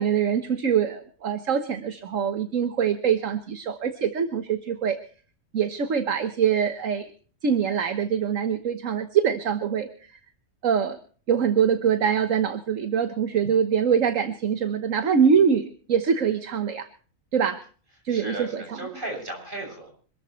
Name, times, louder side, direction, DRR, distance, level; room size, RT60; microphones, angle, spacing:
voice 1, 0.0-5.0 5.5-7.1 7.4-10.1 10.6-11.0 11.3-16.9 17.3-17.6 18.0-18.8, right 7 dB, 70° right, 9 dB, 1.5 m, -24 dB
voice 2, 18.1-19.9, right 2 dB, 40° right, 2 dB, 7.2 m, -35 dB
26.5 x 13.5 x 3.1 m, 0.42 s
omnidirectional pair, 1.4 m